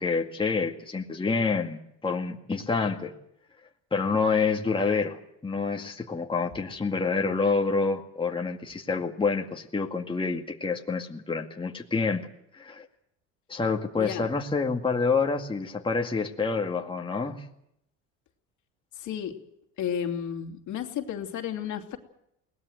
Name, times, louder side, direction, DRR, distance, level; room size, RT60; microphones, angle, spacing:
voice 1, 0.0-3.1 3.9-12.3 12.5-12.9 13.5-17.5, left 4 dB, 15° left, 2 dB, 2.1 m, -27 dB
voice 2, 18.9-19.4 19.8-22.0, left 9 dB, 65° left, 5 dB, 2.8 m, -32 dB
22.0 x 18.5 x 7.9 m, 0.77 s
supercardioid pair, 90°, 32 cm